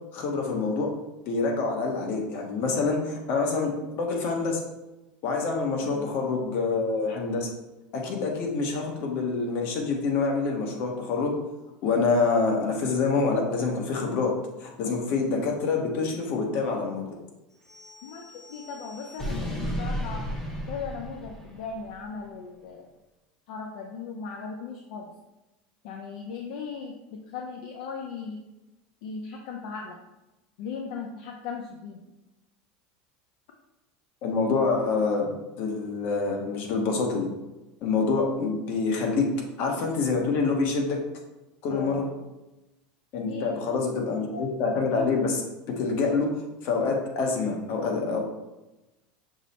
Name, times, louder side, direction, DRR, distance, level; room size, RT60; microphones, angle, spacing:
voice 1, 0.1-0.9 1.3-4.6 5.2-7.5 7.9-11.3 11.8-14.3 14.6-17.0 34.2-37.3 37.8-39.3 39.6-41.0 41.6-42.1 43.1-45.4 45.8-46.3 46.6-48.2, left 4 dB, 50° left, 1 dB, 1.0 m, -26 dB
sound 1, 17.6-21.9, equal, 10° left, 0.8 m, -35 dB
voice 2, 18.0-20.3 20.7-22.9 23.5-25.0 25.8-28.4 29.0-30.0 30.6-32.0 39.0-39.2 41.7-42.1 43.2-44.0, left 5 dB, 65° left, 1 dB, 0.5 m, -38 dB
6.0 x 2.1 x 4.1 m, 1.0 s
supercardioid pair, 150°, 5 cm